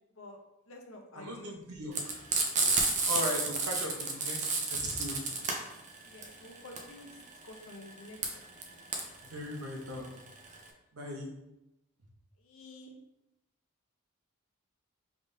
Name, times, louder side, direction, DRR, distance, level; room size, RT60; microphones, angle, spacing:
voice 1, 0.7-1.6 6.0-7.2 7.4-8.4 8.7-8.8 12.4-12.9, left 2 dB, 65° left, 3 dB, 0.7 m, -50 dB
voice 2, 1.2-2.2 2.7-5.4 9.2-10.1 10.9-11.3, left 1 dB, 85° right, -1 dB, 1.1 m, -39 dB
Frying (food), 1.9-10.7, right 3 dB, 35° right, 0.6 m, -31 dB
5.0 x 3.5 x 2.7 m, 0.91 s
head